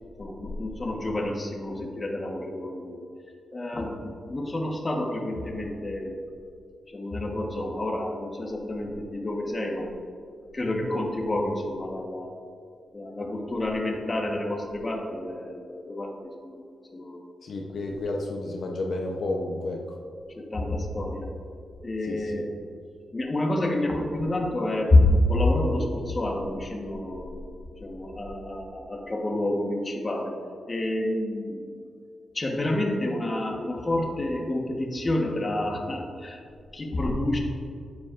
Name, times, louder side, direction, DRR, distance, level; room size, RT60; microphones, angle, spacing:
voice 1, 0.2-3.0 3.5-6.2 6.9-9.9 10.5-12.3 12.9-16.6 16.9-17.2 20.3-21.3 21.8-22.5 23.1-27.3 27.8-30.3 30.7-31.7 32.3-36.4 36.7-37.4, left 1 dB, 25° left, 0 dB, 1.2 m, -28 dB
voice 2, 17.4-20.0 22.0-22.4, left 2 dB, 65° left, 0 dB, 0.8 m, -31 dB
9.4 x 8.2 x 2.5 m, 2.3 s
cardioid pair, 105°, 0 cm